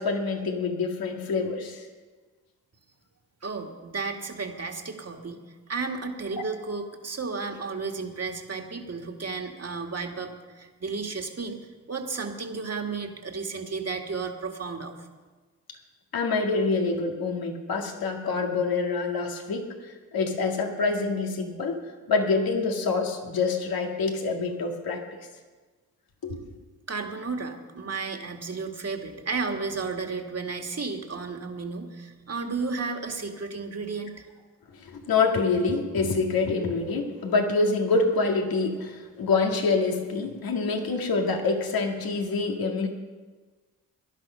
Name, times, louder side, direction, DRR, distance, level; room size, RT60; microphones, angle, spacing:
voice 1, 0.0-1.9 16.1-21.8 22.1-25.0 26.2-26.4 34.7-42.9, left 4 dB, 80° left, 2 dB, 2.0 m, -26 dB
voice 2, 3.4-5.4 5.7-15.1 26.9-34.2, right 4 dB, 45° right, 4 dB, 2.1 m, -33 dB
17.0 x 11.0 x 5.6 m, 1.4 s
cardioid pair, 45°, 36 cm